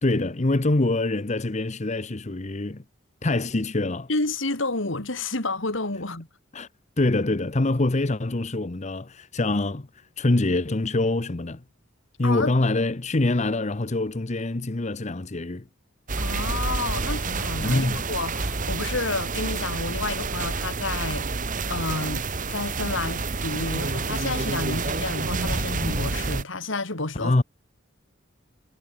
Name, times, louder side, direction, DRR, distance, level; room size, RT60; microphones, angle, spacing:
voice 1, 0.0-2.8 3.2-4.1 6.5-6.7 7.0-11.6 12.2-15.7 17.6-18.0 27.2-27.4, left 2 dB, 35° left, 0.9 m, -25 dB
voice 2, 4.1-6.3 12.2-12.6 16.2-21.3 21.7-27.3, left 2 dB, 70° left, 3.1 m, -30 dB
sound 1, 16.1-26.4, right 3 dB, 40° right, 1.5 m, -28 dB
head